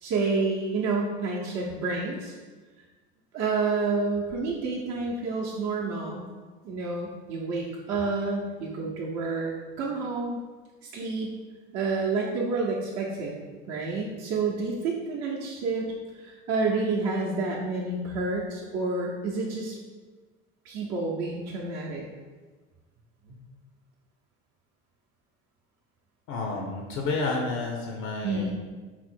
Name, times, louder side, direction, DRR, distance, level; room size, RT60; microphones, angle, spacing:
voice 1, 0.0-2.3 3.3-6.2 6.6-10.4 10.8-11.3 11.7-13.3 13.7-19.7 20.6-22.0 28.2-28.5, right 3 dB, 55° right, -4 dB, 0.7 m, -29 dB
voice 2, 26.3-28.5, left 3 dB, 70° left, 1 dB, 0.6 m, -30 dB
4.1 x 2.0 x 4.3 m, 1.3 s
supercardioid pair, 85°, 30 cm